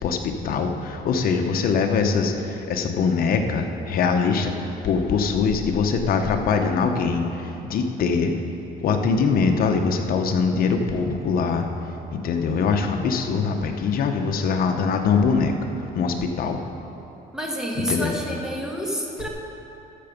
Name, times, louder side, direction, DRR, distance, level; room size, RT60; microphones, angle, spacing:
voice 1, 0.0-4.5 4.8-8.3 8.8-11.7 12.1-15.5 15.9-16.6 17.9-18.1, left 5 dB, 60° left, 4 dB, 1.0 m, -22 dB
voice 2, 17.3-19.3, equal, 5° right, -1 dB, 1.7 m, -28 dB
13.5 x 6.8 x 5.3 m, 2.9 s
cardioid pair, 110°, 17 cm